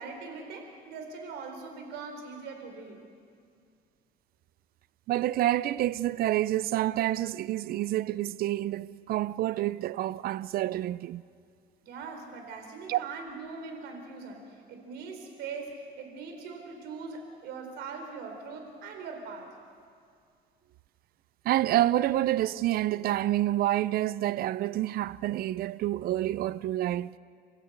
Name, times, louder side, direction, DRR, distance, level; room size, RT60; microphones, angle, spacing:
voice 1, 0.0-3.0 11.8-19.6, right 4 dB, 85° right, 4.4 m, -41 dB
voice 2, 5.1-11.2 12.9-13.1 21.4-27.2, right 14 dB, 60° right, 0.5 m, -28 dB
30.0 x 16.0 x 8.1 m
cardioid pair, 110°, 17 cm